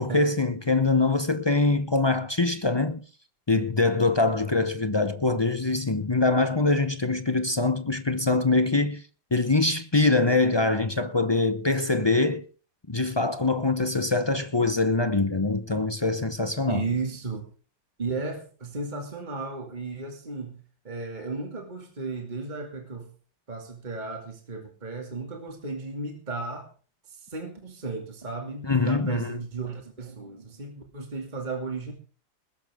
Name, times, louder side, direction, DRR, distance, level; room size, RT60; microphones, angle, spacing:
voice 1, 0.0-3.0 3.5-9.0 9.3-12.5 12.9-16.8 28.6-29.4, left 3 dB, 40° left, 0.3 m, -24 dB
voice 2, 16.7-17.4 18.0-20.6 20.8-23.1 23.5-26.7 27.1-31.9, right 3 dB, 25° right, 2.7 m, -34 dB
20.5 x 12.5 x 3.7 m
omnidirectional pair, 2.0 m